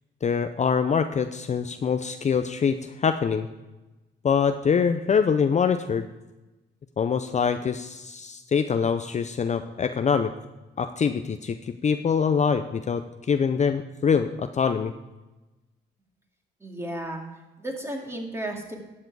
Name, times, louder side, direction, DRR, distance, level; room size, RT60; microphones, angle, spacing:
voice 1, 0.2-3.5 4.2-6.1 7.0-10.3 10.8-14.9, left 6 dB, 35° left, 9 dB, 0.6 m, -24 dB
voice 2, 16.6-17.2 17.6-18.8, right 1 dB, 15° right, 1 dB, 2.2 m, -33 dB
12.0 x 7.5 x 4.7 m, 1.1 s
cardioid pair, 90°, 20 cm